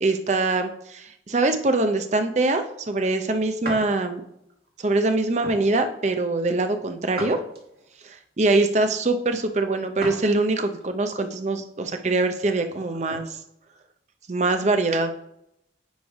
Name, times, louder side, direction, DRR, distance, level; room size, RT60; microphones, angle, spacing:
voice 1, 0.0-4.2 4.8-7.4 8.0-13.4 14.3-15.1, right 2 dB, 40° right, 7 dB, 0.6 m, -23 dB
sound 1, 3.6-3.9 4.5-4.7 5.4-5.7 7.2-7.9 10.0-10.3 10.8-10.9 12.6-13.3, right 1 dB, 60° right, 1.6 m, -36 dB
9.4 x 3.2 x 4.8 m, 0.81 s
head